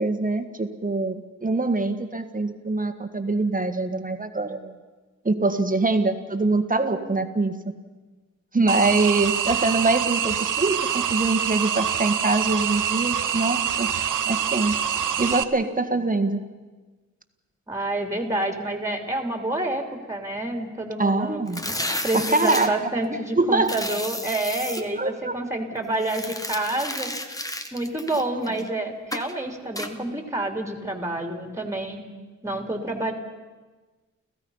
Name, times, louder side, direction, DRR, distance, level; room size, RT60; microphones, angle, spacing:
voice 1, 0.0-4.7 5.3-7.6 8.5-13.9 14.3-14.7 15.2-16.4 21.0-21.6 22.1-22.7 23.4-23.7 24.9-25.4, right 3 dB, 25° right, 8 dB, 1.7 m, -24 dB
sound 1, 8.7-15.4, right 8 dB, 75° right, 0.9 m, -25 dB
voice 2, 17.7-21.4 22.0-27.1 27.7-32.0 32.4-33.1, right 1 dB, 10° right, 4 dB, 3.1 m, -28 dB
sound 2, 21.5-22.7 23.6-24.8 26.0-28.7 29.1-29.3 29.8-29.9, left 1 dB, 10° left, 1.4 m, -32 dB
30.0 x 15.5 x 5.7 m, 1.3 s
wide cardioid pair, 90°, 31 cm